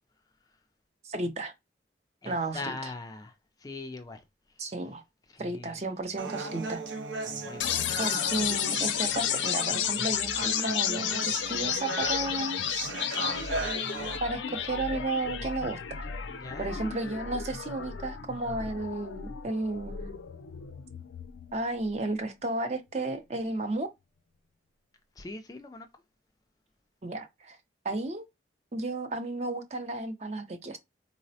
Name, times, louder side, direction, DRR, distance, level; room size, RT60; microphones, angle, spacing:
voice 1, 1.0-1.5 2.3-2.9 4.6-5.0 5.4-6.8 8.0-12.6 14.2-16.1 16.6-20.2 21.5-23.9 27.0-27.6 27.8-28.3 28.7-30.8, right 2 dB, 35° right, 0.5 m, -33 dB
voice 2, 2.2-4.7 5.3-5.8 7.2-8.1 16.3-16.7 25.2-25.9, left 3 dB, 20° left, 0.3 m, -42 dB
Human voice, 6.2-14.2, right 3 dB, 80° right, 0.6 m, -37 dB
sound 1, 7.6-21.6, left 8 dB, 80° left, 0.4 m, -32 dB
3.9 x 2.0 x 2.7 m
head